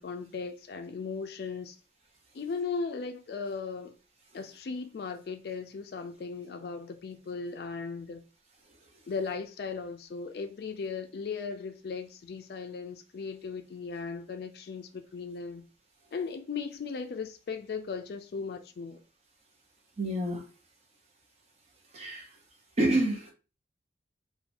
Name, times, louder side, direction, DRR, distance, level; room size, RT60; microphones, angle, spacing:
voice 1, 0.0-1.8 2.3-4.0 4.3-8.2 9.1-15.6 16.1-19.0, left 5 dB, 55° left, 0.3 m, -37 dB
voice 2, 20.0-20.5 21.9-22.3 22.8-23.3, right 1 dB, 35° right, 0.6 m, -28 dB
2.9 x 2.2 x 2.5 m
head